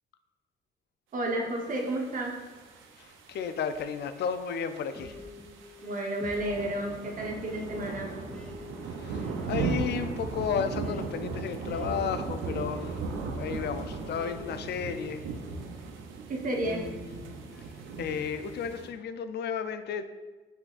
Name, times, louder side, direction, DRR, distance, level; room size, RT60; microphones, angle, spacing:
voice 1, 1.1-2.4 5.8-8.1 16.3-16.9, right 1 dB, 40° right, 0 dB, 1.0 m, -31 dB
sound 1, 1.7-18.9, right 4 dB, 80° right, 0.6 m, -38 dB
voice 2, 3.0-5.1 8.8-15.2 18.0-20.0, left 7 dB, 60° left, 10 dB, 0.4 m, -33 dB
sound 2, 4.9-16.0 16.6-18.2, left 1 dB, 5° left, 0.5 m, -47 dB
5.7 x 3.9 x 2.4 m, 1.3 s
cardioid pair, 90°, 20 cm